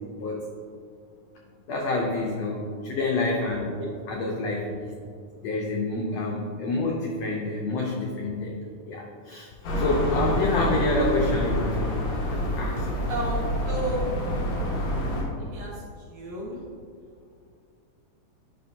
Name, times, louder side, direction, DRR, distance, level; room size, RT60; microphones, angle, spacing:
voice 1, 0.1-0.5 1.7-3.8 4.1-5.0 5.4-8.5 8.9-13.0 15.0-15.2, left 2 dB, 90° left, 0 dB, 1.4 m, -28 dB
sound 1, 9.6-15.2, equal, 65° left, 2.7 m, -27 dB
voice 2, 13.1-14.1 15.4-15.7 16.1-16.6, right 1 dB, 65° right, -4 dB, 1.9 m, -32 dB
8.7 x 5.6 x 2.7 m, 2.3 s
omnidirectional pair, 3.7 m